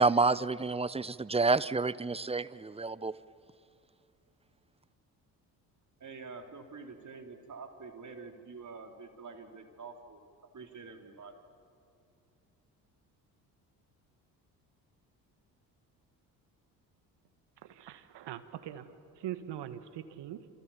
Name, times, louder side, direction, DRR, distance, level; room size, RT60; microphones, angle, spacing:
voice 1, 0.0-3.1, right 3 dB, 10° right, 18 dB, 0.8 m, -28 dB
voice 2, 6.0-10.2 10.5-11.4, right 4 dB, 35° right, 4 dB, 4.1 m, -47 dB
voice 3, 17.6-20.5, right 11 dB, 55° right, 10 dB, 1.9 m, -42 dB
29.0 x 27.0 x 7.4 m, 2.4 s
hypercardioid pair, 50°, 49 cm